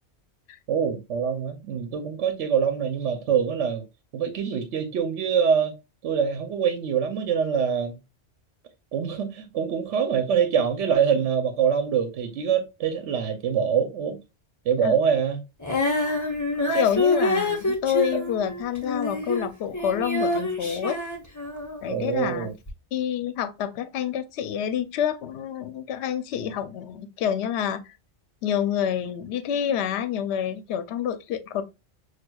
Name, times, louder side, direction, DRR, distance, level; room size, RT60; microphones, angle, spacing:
voice 1, 0.7-3.8 4.1-5.7 6.0-8.0 8.9-14.2 14.7-15.4 21.9-22.5, right 7 dB, 85° right, 0.9 m, -24 dB
Female singing, 15.6-22.0 22.7-22.8, left 2 dB, 20° left, 0.7 m, -26 dB
voice 2, 16.7-21.0 21.8-22.5 22.9-27.9 28.4-31.6, left 9 dB, 70° left, 0.8 m, -28 dB
6.0 x 2.3 x 2.2 m
omnidirectional pair, 1.2 m